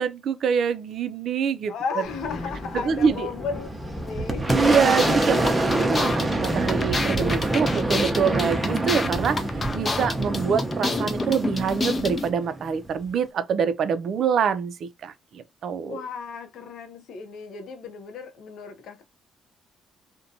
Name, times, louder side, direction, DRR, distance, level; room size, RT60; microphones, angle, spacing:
voice 1, 0.0-1.7 2.8-3.3 4.5-16.0, right 6 dB, 65° right, 0.4 m, -25 dB
voice 2, 1.7-3.7 3.9-4.7 15.9-19.0, left 5 dB, 75° left, 0.6 m, -34 dB
Thunder, 2.0-13.2, equal, 5° left, 0.9 m, -41 dB
Boom, 3.6-13.0, right 2 dB, 20° right, 0.6 m, -26 dB
sound 1, 4.5-12.3, left 3 dB, 30° left, 0.5 m, -30 dB
2.6 x 2.1 x 2.6 m
cardioid pair, 90°, 0 cm